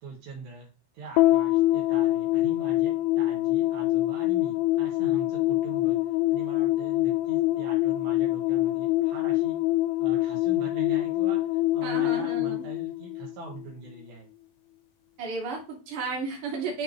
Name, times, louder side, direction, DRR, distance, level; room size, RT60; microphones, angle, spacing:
voice 1, 0.0-9.6 10.0-14.3, right 3 dB, 70° right, -2 dB, 3.6 m, -43 dB
sound 1, 1.2-13.7, left 17 dB, 85° left, 2.9 m, -25 dB
voice 2, 11.8-12.6 15.2-16.8, right 4 dB, 45° right, -1 dB, 3.5 m, -33 dB
11.5 x 4.5 x 3.3 m, 0.32 s
omnidirectional pair, 5.3 m